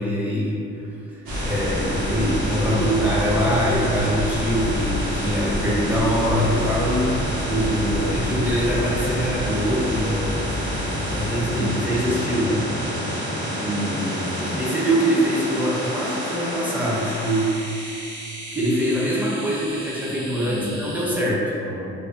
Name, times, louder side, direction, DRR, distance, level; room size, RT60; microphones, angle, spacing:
voice 1, 0.0-10.5 11.1-12.7 14.6-18.0 18.5-21.6, equal, 5° right, -6 dB, 0.5 m, -24 dB
sound 1, 1.3-21.1, equal, 75° right, 0.8 m, -28 dB
voice 2, 2.7-3.3 7.7-8.2 11.4-11.9 13.5-14.5 20.4-20.7 21.6-21.9, equal, 85° left, -7 dB, 0.7 m, -31 dB
2.5 x 2.1 x 2.3 m, 2.5 s
cardioid pair, 90°, 30 cm